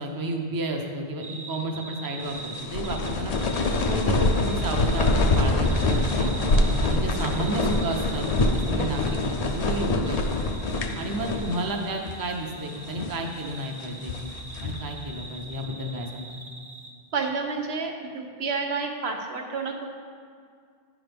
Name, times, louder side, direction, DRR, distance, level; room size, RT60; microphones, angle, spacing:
voice 1, 0.0-3.3 3.9-8.3 8.5-10.4 11.0-16.4, right 1 dB, 25° right, 2 dB, 0.6 m, -32 dB
sound 1, 1.2-16.9 17.2-17.3, right 3 dB, 45° right, 1.0 m, -42 dB
sound 2, 2.3-11.8 12.1-12.2 12.8-13.3 13.8-14.9, left 2 dB, 50° left, 0.5 m, -25 dB
voice 2, 17.1-19.9, right 4 dB, 85° right, 3 dB, 1.1 m, -30 dB
9.7 x 6.1 x 3.4 m, 2.1 s
omnidirectional pair, 1.0 m